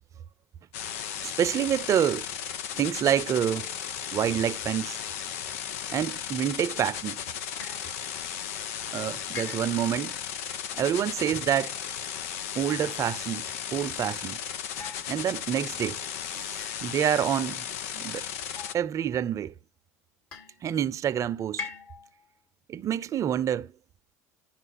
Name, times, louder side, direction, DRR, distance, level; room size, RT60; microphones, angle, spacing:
sound 1, 0.7-18.7, left 9 dB, 75° left, 0.8 m, -35 dB
voice 1, 1.2-2.3 2.7-3.7 4.1-5.0 5.9-7.2 8.9-10.1 10.7-11.8 12.5-13.4 13.7-14.4 15.1-16.0 16.3-17.7 17.9-18.3 18.7-19.5 20.6-21.7 22.7-23.7, right 10 dB, 40° right, 0.7 m, -27 dB
sound 2, 7.6-7.9 9.3-9.9 11.1-11.4 12.7-13.3 14.8-15.6 16.6-17.1 18.6-19.2 20.3-20.8 21.6-22.2, left 4 dB, 55° left, 4.7 m, -43 dB
11.0 x 4.5 x 5.9 m
hypercardioid pair, 75°, 8 cm